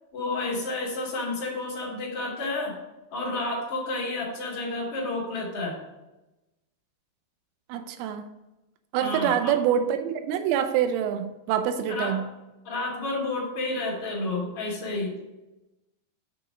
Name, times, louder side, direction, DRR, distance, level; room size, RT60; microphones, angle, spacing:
voice 1, 0.1-2.8 3.1-5.8 9.0-9.5 11.9-12.2 12.6-15.1, left 2 dB, 50° left, -6 dB, 1.7 m, -30 dB
voice 2, 7.7-8.3 8.9-12.3, right 9 dB, 90° right, 8 dB, 3.2 m, -26 dB
8.7 x 2.9 x 6.1 m, 0.99 s
omnidirectional pair, 5.7 m